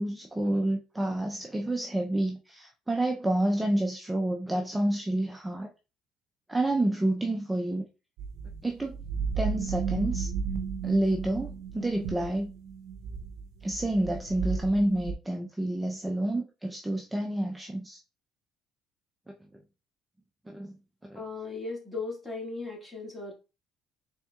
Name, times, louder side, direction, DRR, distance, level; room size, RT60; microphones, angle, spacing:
voice 1, 0.0-5.7 6.5-7.9 8.6-9.0 9.4-10.3 10.8-12.5 13.6-18.0 20.5-20.7 21.1-21.2, right 1 dB, 10° right, 0.5 m, -29 dB
sound 1, 8.2-15.1, right 6 dB, 80° right, 0.5 m, -34 dB
voice 2, 21.1-23.3, left 3 dB, 15° left, 2.0 m, -37 dB
4.3 x 3.5 x 2.3 m
cardioid pair, 110°, 0 cm